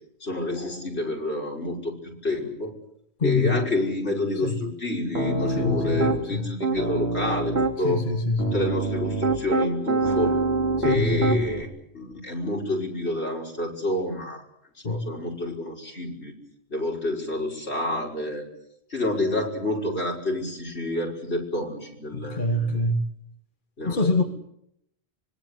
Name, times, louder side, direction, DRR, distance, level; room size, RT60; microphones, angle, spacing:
voice 1, 0.2-2.0 2.2-2.7 3.2-8.0 8.5-10.4 10.8-11.7 11.9-14.4 14.8-16.3 16.7-18.4 18.9-22.7 23.8-24.3, left 1 dB, 85° left, -1 dB, 6.1 m, -28 dB
voice 2, 3.2-3.6 4.4-4.6 5.6-6.5 7.8-8.6 10.8-11.4 14.8-15.1 22.1-23.1 23.8-24.2, left 2 dB, 50° left, 5 dB, 1.7 m, -25 dB
Piano, 5.1-6.2 6.6-7.7 8.4-11.6, right 2 dB, 75° right, 3.5 m, -25 dB
25.5 x 21.0 x 8.2 m, 0.76 s
omnidirectional pair, 1.1 m